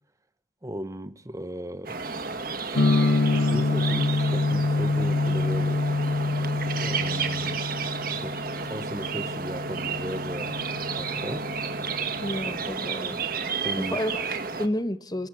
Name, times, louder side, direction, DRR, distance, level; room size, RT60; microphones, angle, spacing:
voice 1, 0.6-2.0 2.6-2.9 3.3-5.8 6.8-7.7 8.1-10.6 10.9-11.5 13.6-14.0, equal, 15° right, 1.0 m, -36 dB
sound 1, 1.8-14.7, right 5 dB, 50° right, 1.7 m, -32 dB
sound 2, 2.7-12.5, left 2 dB, 80° left, 1.3 m, -27 dB
voice 2, 12.2-13.2 13.5-13.6 13.9-15.3, left 1 dB, 20° left, 1.2 m, -31 dB
30.0 x 18.0 x 7.6 m
head